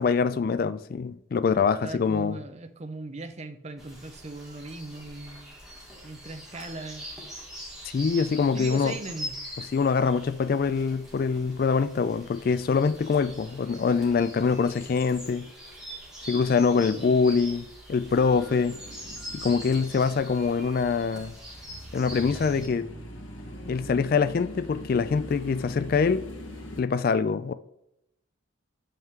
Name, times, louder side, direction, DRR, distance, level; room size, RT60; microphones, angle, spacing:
voice 1, 0.0-2.4 7.9-9.0 9.6-15.5 16.3-18.8 19.3-21.3 21.9-22.9 23.7-26.3 26.8-27.5, left 5 dB, 45° left, 0.3 m, -24 dB
voice 2, 1.8-5.5 6.0-7.1 8.5-9.3 16.9-17.3, right 2 dB, 30° right, 0.6 m, -39 dB
sound 1, 3.8-22.7, equal, 5° right, 1.8 m, -43 dB
sound 2, 18.1-26.8, equal, 85° left, 1.6 m, -42 dB
7.8 x 5.5 x 3.6 m
head